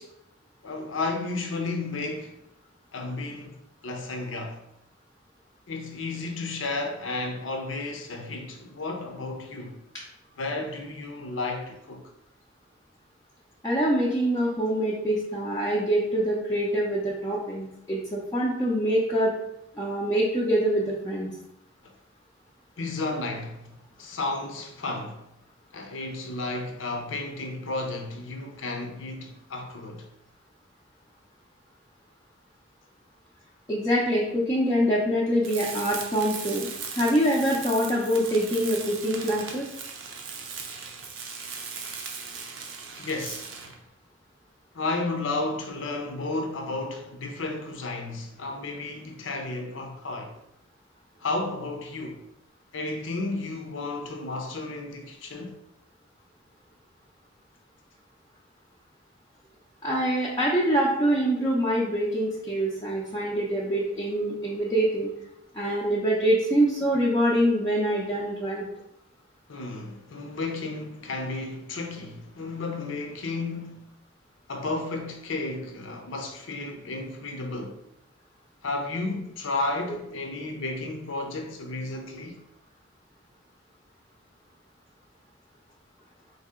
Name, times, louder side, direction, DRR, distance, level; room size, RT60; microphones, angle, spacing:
voice 1, 0.6-2.4 2.9-4.6 5.7-9.8 10.4-12.0 22.8-25.2 25.7-30.1 43.0-43.5 44.7-50.3 51.2-52.2 52.7-55.6 69.5-73.9 74.5-77.8 78.6-82.4, left 2 dB, 75° left, 0.7 m, -33 dB
voice 2, 13.6-19.3 19.8-21.3 33.7-36.7 36.9-39.7 59.8-65.1 65.5-68.7, right 1 dB, 20° left, 0.5 m, -25 dB
Tools, 35.4-43.8, right 5 dB, 80° right, 0.6 m, -38 dB
4.0 x 2.8 x 3.6 m
head